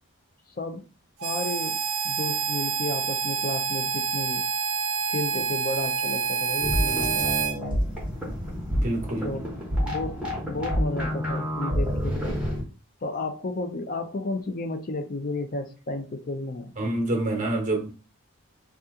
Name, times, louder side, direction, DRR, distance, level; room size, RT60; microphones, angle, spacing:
voice 1, 0.6-0.9 1.2-4.4 5.1-7.3 9.2-9.5 9.8-12.4 13.0-16.7, left 2 dB, 40° left, 0.5 m, -32 dB
Harmonica, 1.2-7.5, right 6 dB, 80° right, 0.5 m, -27 dB
sound 1, 6.6-12.6, equal, 5° right, 1.0 m, -28 dB
voice 2, 8.7-9.3 16.8-17.9, right 1 dB, 35° right, 0.9 m, -27 dB
2.8 x 2.4 x 3.5 m
head